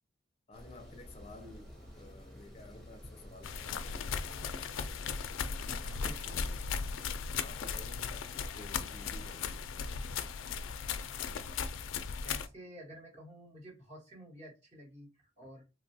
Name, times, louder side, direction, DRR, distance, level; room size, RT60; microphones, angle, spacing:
voice 1, 0.5-4.2 7.3-9.7, left 2 dB, 30° left, 0.5 m, -52 dB
sound 1, 0.5-6.6, equal, ahead, 0.7 m, -51 dB
sound 2, 3.4-12.5, left 6 dB, 85° left, 0.3 m, -37 dB
voice 2, 5.8-6.5 11.1-11.2 12.2-15.6, equal, 35° right, 1.1 m, -51 dB
3.1 x 2.3 x 2.6 m
head